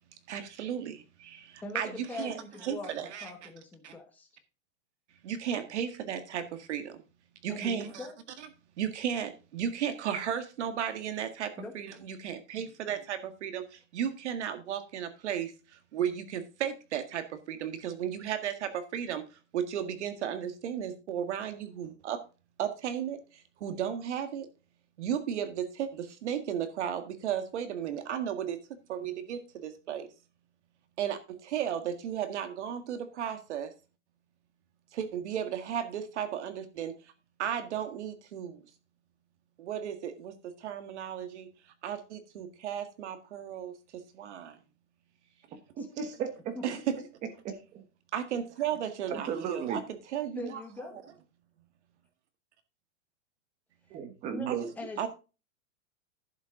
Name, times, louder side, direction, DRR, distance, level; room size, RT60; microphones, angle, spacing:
voice 1, 0.3-3.3 3.8-3.9 5.2-7.0 7.4-8.1 8.8-19.2 19.5-22.2 22.6-24.5 25.0-28.6 28.9-30.1 31.0-33.7 34.9-36.9 37.4-38.6 39.6-41.5 41.8-44.6 46.6-47.0 48.1-49.8 50.1-50.6 54.5-54.6 55.0-55.1, right 9 dB, 65° right, 1.9 m, -34 dB
voice 2, 1.6-4.3 7.5-8.1 11.6-11.7 12.6-12.7 45.8-45.9 46.5-46.8 50.3-50.9 54.3-54.5 54.8-55.1, left 2 dB, 5° left, 1.2 m, -42 dB
voice 3, 45.8-46.6 47.4-47.8 49.1-49.8 53.9-54.7, right 7 dB, 20° right, 1.3 m, -35 dB
11.0 x 7.3 x 3.8 m
supercardioid pair, 175°, 37 cm